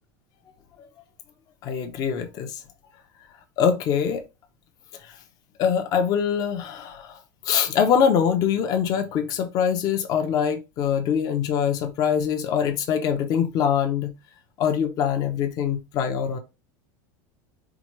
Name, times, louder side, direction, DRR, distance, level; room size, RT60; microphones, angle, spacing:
voice 1, 1.6-2.6 3.6-4.2 5.0-5.1 5.6-7.2 7.4-14.1 14.6-16.4, left 8 dB, 40° left, 0.8 m, -23 dB
4.9 x 2.4 x 3.1 m
supercardioid pair, 155°, 10 cm